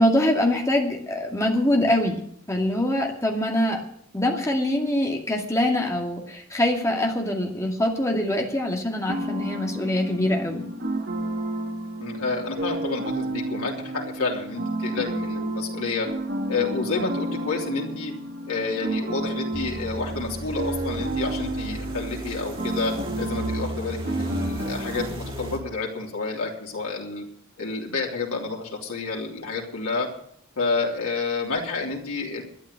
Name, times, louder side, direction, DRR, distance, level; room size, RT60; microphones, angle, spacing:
voice 1, 0.0-2.2 2.5-3.8 4.1-10.7, left 1 dB, 15° left, 0 dB, 2.3 m, -24 dB
sound 1, 9.1-25.1, right 1 dB, 55° right, 2.4 m, -31 dB
voice 2, 12.0-16.1 16.5-18.1 18.4-27.2 27.6-30.1 30.6-32.4, left 4 dB, 90° left, -2 dB, 3.3 m, -29 dB
sound 2, 19.5-25.6, right 1 dB, 25° right, 2.2 m, -35 dB
12.5 x 9.6 x 8.2 m, 0.65 s
head